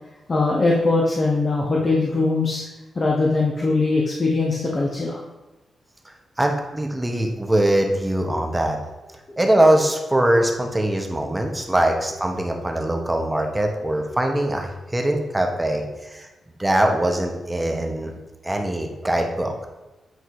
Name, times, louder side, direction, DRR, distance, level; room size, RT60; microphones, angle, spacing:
voice 1, 0.3-2.6 2.9-5.2, left 3 dB, 35° left, -3 dB, 0.9 m, -21 dB
voice 2, 6.4-8.8 9.4-16.3 16.6-18.2 18.4-19.5, right 1 dB, 15° right, 3 dB, 0.8 m, -22 dB
8.0 x 2.7 x 4.7 m, 1.1 s
cardioid pair, 105°, 0 cm